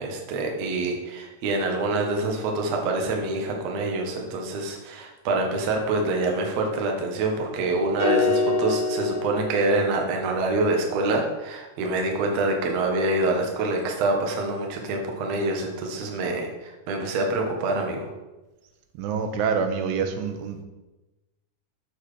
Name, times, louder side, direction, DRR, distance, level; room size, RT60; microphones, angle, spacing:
voice 1, 0.0-18.1, right 2 dB, 70° right, 1 dB, 1.6 m, -26 dB
sound 1, 8.0-10.3, left 3 dB, 65° left, 0.7 m, -26 dB
voice 2, 19.0-20.6, right 6 dB, 90° right, 6 dB, 3.0 m, -26 dB
7.1 x 6.8 x 4.9 m, 1.1 s
omnidirectional pair, 5.0 m